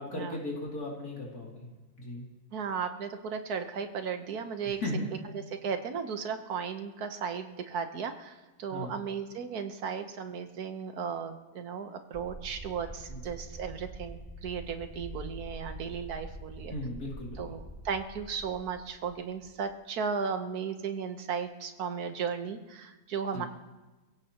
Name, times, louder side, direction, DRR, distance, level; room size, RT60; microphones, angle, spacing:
voice 1, 0.0-1.7 2.0-2.2 4.8-5.1 8.7-8.9 13.1-13.2 16.7-17.4 23.3-23.4, left 1 dB, 75° left, -3 dB, 3.5 m, -36 dB
voice 2, 2.5-4.8 5.5-16.7 17.4-23.5, right 6 dB, 75° right, 7 dB, 1.6 m, -35 dB
sound 1, 12.1-19.7, right 1 dB, 15° right, 3.0 m, -45 dB
29.5 x 16.5 x 3.0 m, 1.2 s
omnidirectional pair, 1.6 m